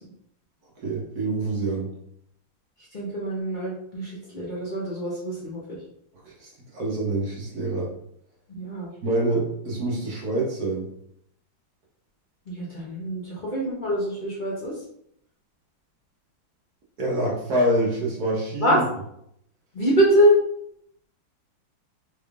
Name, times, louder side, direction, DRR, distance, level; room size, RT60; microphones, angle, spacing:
voice 1, 0.8-1.9 6.2-7.9 9.0-10.9 17.0-18.8, right 1 dB, 55° right, -3 dB, 1.3 m, -26 dB
voice 2, 2.9-5.8 8.5-8.9 12.5-14.8 18.6-18.8 19.7-20.3, equal, 65° left, -5 dB, 0.4 m, -24 dB
4.3 x 3.5 x 2.4 m, 0.72 s
omnidirectional pair, 2.2 m